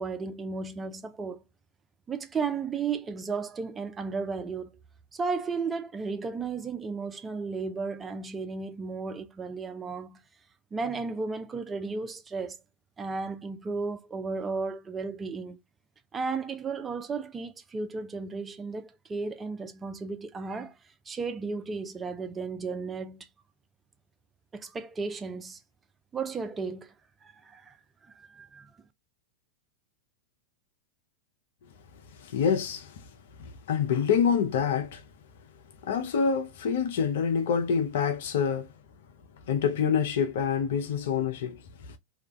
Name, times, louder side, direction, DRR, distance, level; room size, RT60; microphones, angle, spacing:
voice 1, 0.0-1.4 2.1-4.7 5.1-10.2 10.7-12.6 13.0-15.6 16.1-20.7 21.1-23.3 24.5-25.6 26.1-26.9 27.2-27.7 28.0-28.7, right 4 dB, 15° right, 0.3 m, -34 dB
voice 2, 32.2-33.0 33.4-35.0 35.8-38.7 39.5-41.6, left 7 dB, 55° left, 0.5 m, -26 dB
2.4 x 2.1 x 3.0 m
figure-of-eight pair, 90°, 0 cm